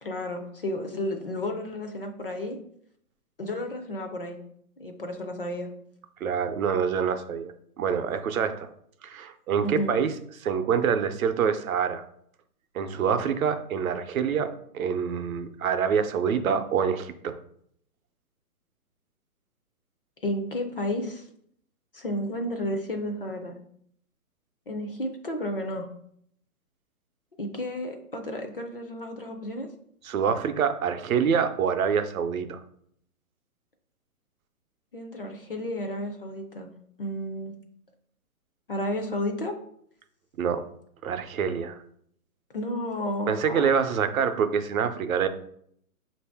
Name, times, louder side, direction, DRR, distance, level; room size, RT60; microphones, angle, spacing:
voice 1, 0.0-2.6 3.4-4.4 4.8-5.7 9.6-9.9 20.2-21.2 21.9-23.5 24.7-25.9 27.4-29.7 34.9-36.7 37.0-37.5 38.7-39.6 42.5-43.7, left 1 dB, 40° left, 4 dB, 0.4 m, -32 dB
voice 2, 6.2-8.7 9.0-10.1 10.4-12.0 12.7-17.3 30.0-32.6 40.4-40.6 41.0-41.8 43.3-45.3, right 7 dB, 65° right, 9 dB, 0.6 m, -26 dB
5.3 x 2.6 x 3.4 m, 0.67 s
hypercardioid pair, 165°, 45 cm